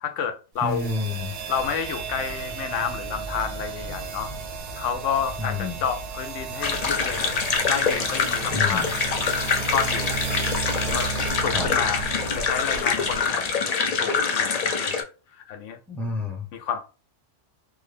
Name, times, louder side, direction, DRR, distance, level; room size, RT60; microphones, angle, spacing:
voice 1, 0.0-1.0 1.5-4.3 4.8-7.2 7.7-9.1 9.7-10.3 10.8-11.1 11.4-12.1 12.3-13.4 13.9-15.1 15.5-15.8 16.5-16.8, left 7 dB, 80° left, 0.9 m, -30 dB
voice 2, 0.6-1.4 5.4-5.8 8.5-8.9 11.5-11.7 15.9-16.5, left 3 dB, ahead, 0.7 m, -29 dB
sound 1, 0.6-13.5, right 6 dB, 60° right, 0.7 m, -34 dB
sound 2, 1.4-11.2, equal, 25° left, 1.0 m, -43 dB
sound 3, 6.6-15.0, left 5 dB, 60° left, 0.4 m, -25 dB
3.5 x 2.1 x 3.3 m
omnidirectional pair, 1.3 m